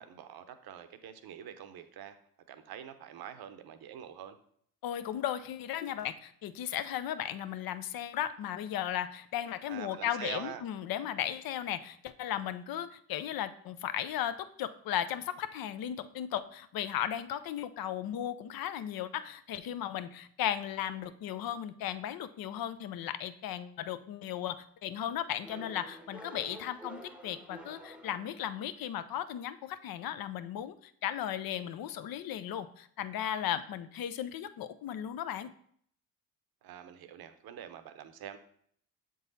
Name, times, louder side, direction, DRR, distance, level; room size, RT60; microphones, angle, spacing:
voice 1, 0.0-2.2 2.5-4.4 9.7-10.6 36.6-38.4, right 9 dB, 60° right, 10 dB, 0.8 m, -45 dB
voice 2, 4.8-35.5, left 10 dB, 60° left, 13 dB, 0.6 m, -36 dB
sound 1, 25.4-28.9, equal, 5° right, 0.8 m, -49 dB
7.2 x 3.9 x 3.9 m, 0.63 s
hypercardioid pair, 55°, 41 cm